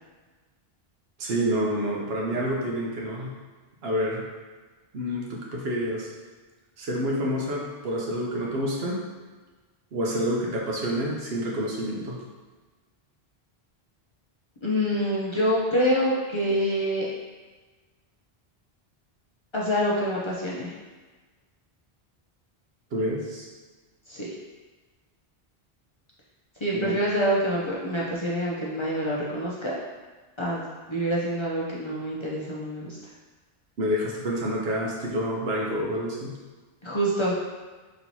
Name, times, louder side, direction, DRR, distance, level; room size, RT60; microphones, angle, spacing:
voice 1, 1.2-3.3 3.8-4.2 4.9-6.1 6.8-9.0 9.9-12.2 22.9-23.5 26.7-27.0 33.8-36.3, equal, 80° right, -2 dB, 1.0 m, -28 dB
voice 2, 14.6-17.1 19.5-20.7 24.1-24.3 26.6-29.7 30.4-33.0 36.8-37.4, equal, 35° left, -6 dB, 0.6 m, -26 dB
4.4 x 3.1 x 2.7 m, 1.3 s
omnidirectional pair, 1.0 m